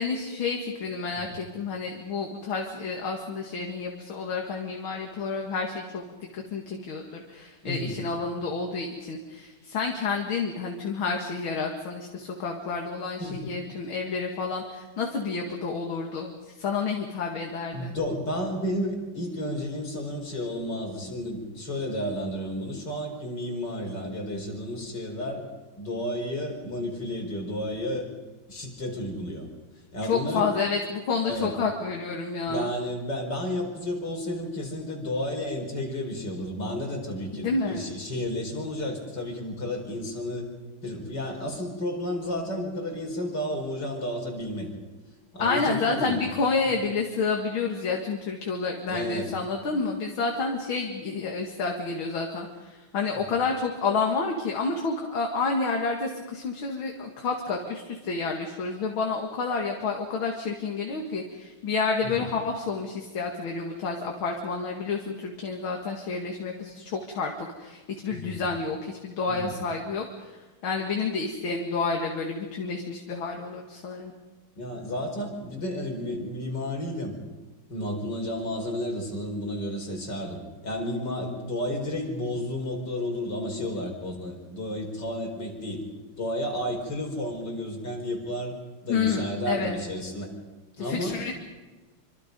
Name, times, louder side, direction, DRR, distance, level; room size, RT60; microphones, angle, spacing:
voice 1, 0.0-6.0 6.3-18.0 30.0-32.7 37.3-37.8 45.4-74.1 88.9-89.7 90.8-91.3, left 4 dB, 65° left, 1 dB, 2.8 m, -29 dB
voice 2, 7.6-8.0 13.2-13.5 17.7-25.4 25.8-28.1 28.5-29.5 29.9-30.5 31.2-31.6 32.5-40.5 40.8-44.7 45.3-46.3 48.9-49.3 62.0-62.3 68.1-68.4 69.2-69.5 74.6-77.1 77.7-85.8 86.2-88.5 88.8-90.3 90.8-91.2, left 1 dB, 50° left, 1 dB, 5.3 m, -32 dB
27.0 x 25.5 x 5.4 m, 1.2 s
omnidirectional pair, 2.4 m